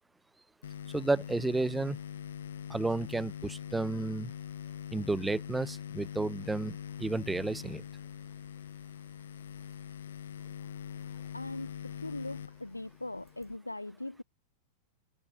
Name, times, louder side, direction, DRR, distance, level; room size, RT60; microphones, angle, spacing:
sound 1, 0.6-13.6, left 9 dB, 65° left, 1.2 m, -43 dB
voice 1, 0.9-2.0 2.7-4.3 4.9-7.8, right 2 dB, 10° right, 1.5 m, -32 dB
voice 2, 11.3-14.2, left 2 dB, 85° left, 0.7 m, -40 dB
figure-of-eight pair, 90°, 0 cm